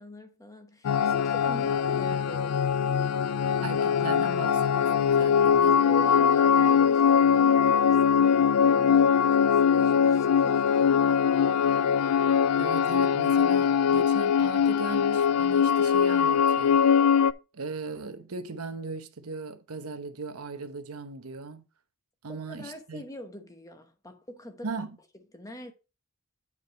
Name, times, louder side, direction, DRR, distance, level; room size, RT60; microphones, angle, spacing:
voice 1, 0.0-2.6 5.2-11.3 22.3-24.7 25.3-25.7, equal, 15° left, 1.0 m, -44 dB
sound 1, 0.8-17.3, left 7 dB, 85° left, 0.4 m, -22 dB
voice 2, 3.6-5.7 12.6-16.8 17.5-21.6 22.2-23.0 24.6-24.9, right 4 dB, 90° right, 0.9 m, -38 dB
8.8 x 4.9 x 4.1 m
head